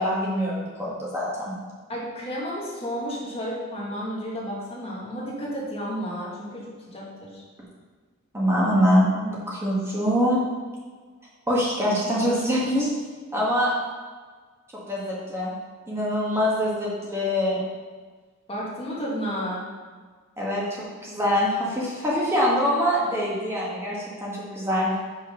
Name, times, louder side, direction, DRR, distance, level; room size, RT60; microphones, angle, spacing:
voice 1, 0.0-1.5 8.3-10.4 11.5-12.9 13.3-13.7 14.9-15.5 15.9-17.6 20.4-20.6 21.0-24.9, equal, 10° right, -6 dB, 1.5 m, -24 dB
voice 2, 1.9-7.4 18.5-19.7, equal, 30° left, -5 dB, 1.8 m, -32 dB
6.1 x 5.7 x 5.1 m, 1.5 s
head